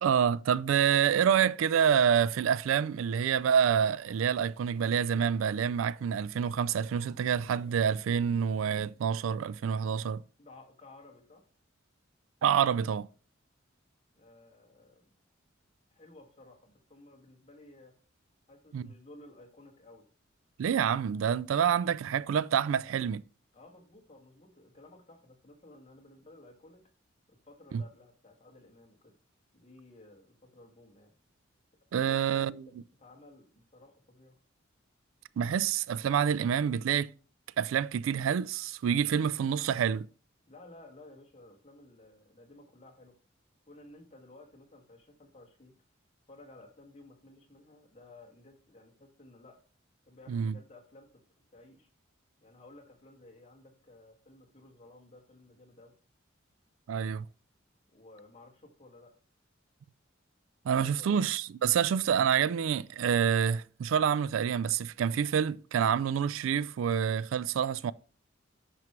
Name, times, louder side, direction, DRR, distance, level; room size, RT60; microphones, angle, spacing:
voice 1, 0.0-10.2 12.4-13.1 18.7-18.8 20.6-23.2 27.7-27.8 31.9-32.5 35.4-37.1 37.6-40.1 50.3-50.5 56.9-57.3 60.7-67.9, right 8 dB, 80° right, 0.3 m, -27 dB
voice 2, 10.4-11.4 14.2-15.1 15.9-17.9 18.5-20.0 23.5-26.8 27.3-29.2 29.5-31.1 32.0-34.4 40.5-43.1 43.7-45.7 46.3-49.6 50.1-51.1 51.5-51.9 52.4-56.0 57.9-59.1 60.7-61.3, left 2 dB, 35° left, 1.9 m, -55 dB
10.5 x 4.7 x 3.1 m
head